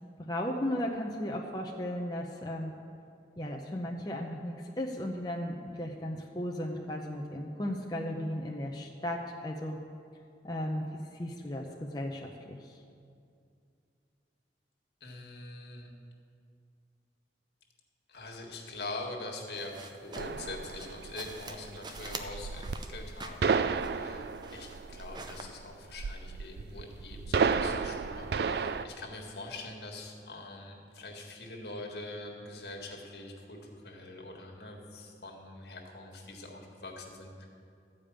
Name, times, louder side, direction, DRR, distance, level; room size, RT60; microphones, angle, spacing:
voice 1, 0.3-2.8 3.4-9.8 10.4-10.9 11.1-12.8, left 1 dB, 25° left, 0 dB, 0.7 m, -35 dB
voice 2, 15.0-15.9 18.1-37.5, left 2 dB, 70° left, 0 dB, 1.7 m, -44 dB
sound 1, 19.5-25.4, right 3 dB, 25° right, 0.6 m, -47 dB
sound 2, 20.2-28.9, right 5 dB, 65° right, 0.4 m, -32 dB
13.5 x 5.1 x 8.8 m, 2.4 s
head